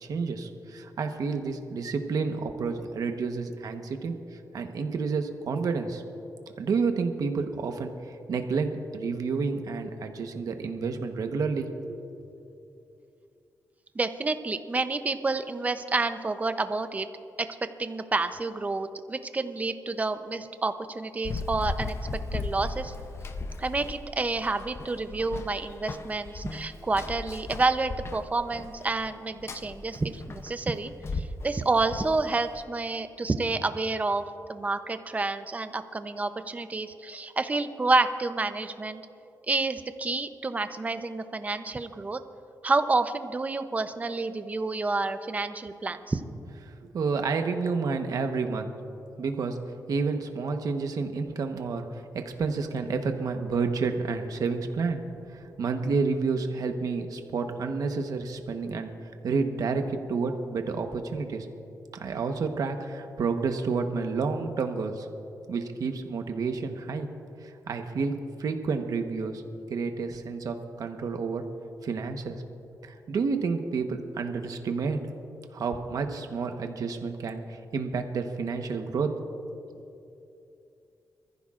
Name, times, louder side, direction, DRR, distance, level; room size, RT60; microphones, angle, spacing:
voice 1, 0.0-4.2 4.5-6.0 6.6-12.3 46.6-48.7 49.2-49.6 49.9-55.0 55.3-58.9 59.2-61.5 61.9-65.1 65.5-67.1 67.4-69.4 69.7-71.4 71.8-72.4 72.8-75.0 75.5-79.2 79.5-79.6, right 4 dB, 65° right, 5 dB, 1.1 m, -30 dB
voice 2, 13.9-17.1 17.4-17.5 17.8-22.0 22.3-22.9 23.6-34.2 34.5-39.0 39.5-42.2 42.6-46.2, right 3 dB, 20° right, 10 dB, 0.6 m, -29 dB
Run, 21.2-32.6, left 3 dB, 40° left, 0.7 m, -37 dB
25.0 x 14.5 x 2.5 m, 2.7 s
wide cardioid pair, 140°, 7 cm